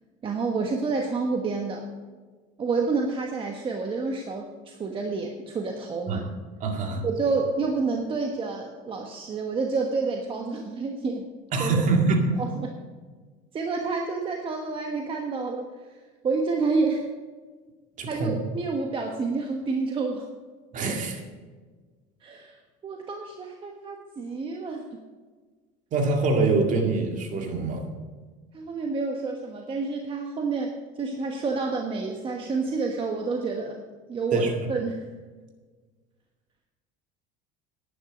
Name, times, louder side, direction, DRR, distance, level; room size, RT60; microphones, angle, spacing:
voice 1, 0.2-1.8 2.6-6.2 7.0-11.3 11.6-11.8 12.4-12.8 13.5-15.6 16.2-17.0 18.1-20.3 22.2-22.6 22.8-25.0 28.5-33.8 34.1-34.4 34.7-35.0, right 4 dB, 30° right, 2 dB, 1.2 m, -29 dB
voice 2, 6.6-7.1 11.5-12.3 18.0-18.4 20.7-21.2 25.9-27.9 34.3-34.5, right 3 dB, 45° right, 3 dB, 2.2 m, -24 dB
11.0 x 9.9 x 5.2 m, 1.4 s
supercardioid pair, 125°, 18 cm